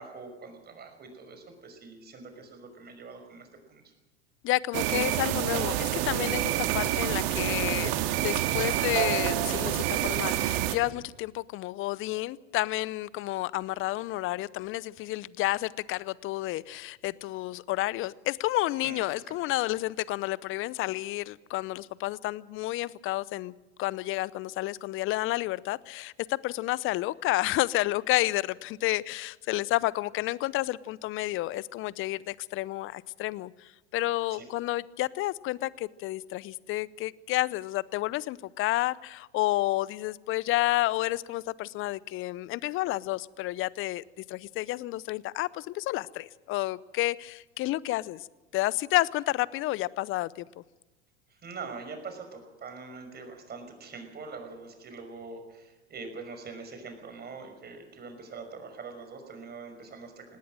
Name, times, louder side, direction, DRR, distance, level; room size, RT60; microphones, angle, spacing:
voice 1, 0.0-3.8 18.8-19.3 34.3-34.5 51.3-60.4, right 4 dB, 30° right, 6 dB, 5.7 m, -43 dB
voice 2, 4.4-23.5 23.8-48.3 48.5-50.6, left 17 dB, 40° left, 21 dB, 0.7 m, -30 dB
sound 1, 4.7-10.8, right 13 dB, 60° right, 2.1 m, -28 dB
19.0 x 18.0 x 7.6 m, 1.2 s
hypercardioid pair, 90°, 34 cm